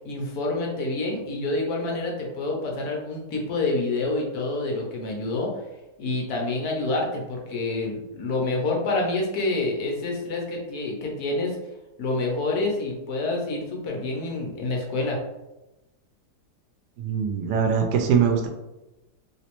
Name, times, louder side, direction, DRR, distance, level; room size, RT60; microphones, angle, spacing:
voice 1, 0.0-5.5 6.0-11.6 12.0-15.2, left 2 dB, 70° left, 0 dB, 1.2 m, -27 dB
voice 2, 17.0-18.5, right 7 dB, 75° right, 3 dB, 1.1 m, -22 dB
3.1 x 3.0 x 2.9 m, 0.99 s
omnidirectional pair, 1.8 m